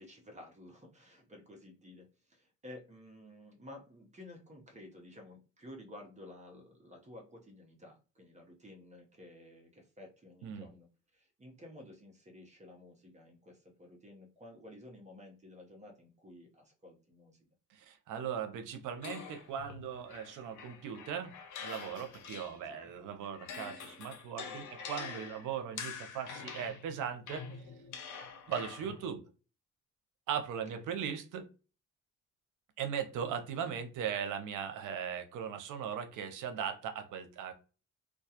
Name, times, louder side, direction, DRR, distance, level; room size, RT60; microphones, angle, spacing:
voice 1, 0.0-17.5 22.6-22.9 30.7-30.9, left 1 dB, 25° right, 1 dB, 0.8 m, -53 dB
voice 2, 17.7-21.3 21.6-27.5 28.5-29.2 30.3-31.5 32.8-37.5, right 8 dB, 85° right, 7 dB, 0.6 m, -38 dB
sound 1, 19.0-22.8 23.2-29.0, left 6 dB, 80° left, 0.7 m, -46 dB
2.3 x 2.2 x 2.8 m, 0.34 s
cardioid pair, 90°, 30 cm